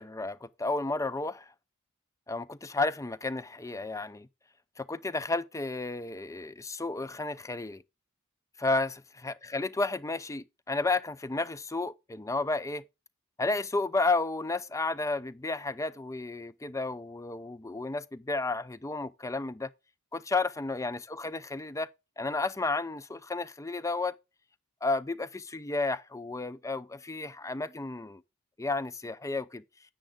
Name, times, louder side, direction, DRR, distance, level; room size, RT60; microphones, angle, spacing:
voice 1, 0.0-1.5 2.3-4.3 4.8-7.8 8.6-12.8 13.4-19.7 20.1-21.9 22.2-24.2 24.8-28.2 28.6-29.6, left 3 dB, 15° left, 0.5 m, -32 dB
10.5 x 7.7 x 3.7 m
head